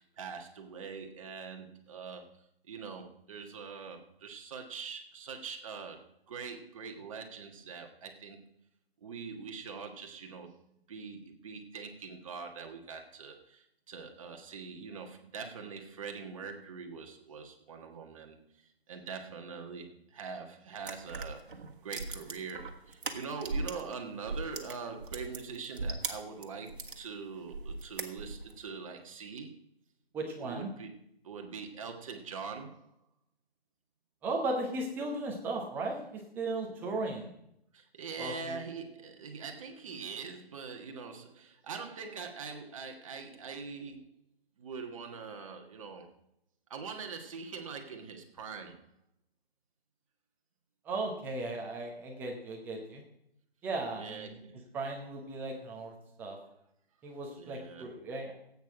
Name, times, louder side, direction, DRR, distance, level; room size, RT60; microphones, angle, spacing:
voice 1, 0.0-2.3 2.7-6.0 6.3-8.4 9.0-10.5 10.9-21.5 21.8-29.6 30.4-30.9 31.2-32.8 36.7-36.8 37.7-44.1 44.6-46.1 46.7-48.8 54.0-54.8 57.4-57.9, right 5 dB, 35° right, 4 dB, 1.5 m, -43 dB
sound 1, 20.8-23.9 24.2-27.0 27.5-28.6, right 3 dB, 60° right, 1.6 m, -38 dB
voice 2, 30.1-30.7 34.2-37.3 38.2-38.5 50.8-53.0 53.6-54.3 54.7-55.9 56.2-56.4 57.0-58.3, right 2 dB, 5° right, 1 dB, 0.9 m, -36 dB
15.5 x 8.6 x 4.9 m, 0.77 s
figure-of-eight pair, 145°, 30 cm